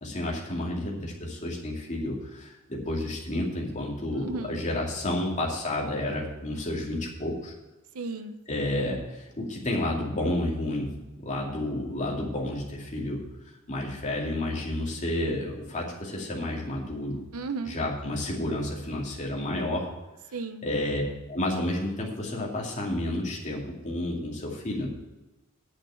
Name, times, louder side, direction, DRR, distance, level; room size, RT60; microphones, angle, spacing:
voice 1, 0.0-7.5 8.5-13.2 13.7-17.2 17.7-19.9 20.6-21.0 21.3-24.9, left 1 dB, 35° left, -2 dB, 2.5 m, -31 dB
voice 2, 4.2-4.6 7.9-8.4 17.3-17.8 20.3-20.7, right 3 dB, 80° right, 9 dB, 0.8 m, -34 dB
8.9 x 6.3 x 8.5 m, 1.1 s
head